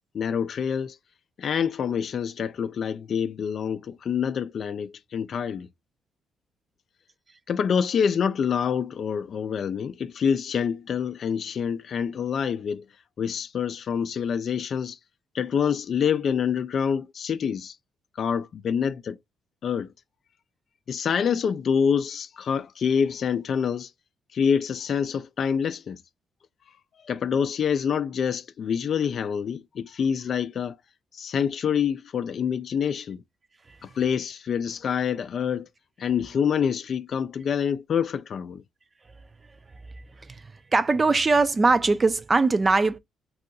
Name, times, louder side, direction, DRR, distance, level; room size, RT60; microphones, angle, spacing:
voice 1, 0.1-1.0 1.4-5.7 7.5-12.8 13.2-15.0 15.3-17.7 18.2-19.2 19.6-19.9 20.9-23.9 24.3-26.0 27.1-30.8 31.1-33.2 33.8-35.7 36.0-38.6, left 7 dB, 55° left, 0.3 m, -26 dB
voice 2, 40.2-43.0, right 3 dB, 30° right, 0.3 m, -21 dB
2.7 x 2.3 x 3.8 m
cardioid pair, 90°, 0 cm